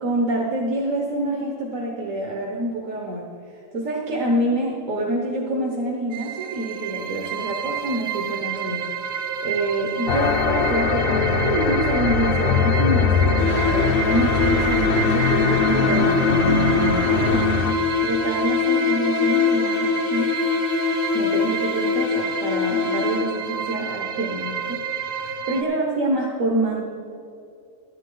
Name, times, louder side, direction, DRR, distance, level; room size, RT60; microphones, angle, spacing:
voice 1, 0.0-3.3 3.7-17.4 18.0-20.3 21.1-26.8, right 1 dB, 85° right, -1 dB, 1.5 m, -27 dB
sound 1, 6.1-25.6, right 8 dB, 60° right, 0.7 m, -30 dB
sound 2, 10.1-17.7, left 5 dB, 60° left, 0.7 m, -21 dB
sound 3, 13.4-23.6, left 5 dB, 90° left, 1.2 m, -23 dB
13.0 x 11.0 x 3.8 m, 2.5 s
omnidirectional pair, 1.3 m